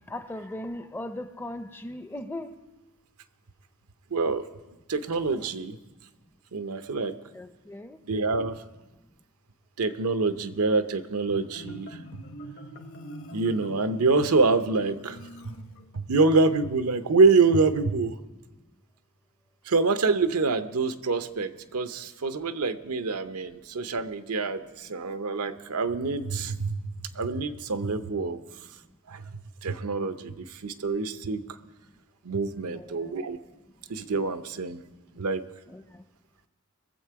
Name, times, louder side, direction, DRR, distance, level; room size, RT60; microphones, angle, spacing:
voice 1, 0.1-2.6 7.3-8.0 32.7-33.2 35.7-36.0, left 1 dB, 10° left, 10 dB, 0.4 m, -38 dB
voice 2, 4.1-4.5 4.9-5.8 6.5-7.1 8.1-8.6 9.8-12.0 13.3-15.2 15.4-15.5 15.9-18.2 19.7-28.4 29.1-29.3 29.6-31.6 32.2-33.4 33.9-34.8 35.1-35.4, right 4 dB, 90° right, 10 dB, 0.7 m, -26 dB
Marimba xylophone, 11.2-16.3, equal, 65° left, 1.1 m, -44 dB
21.5 x 7.5 x 4.7 m, 1.1 s
head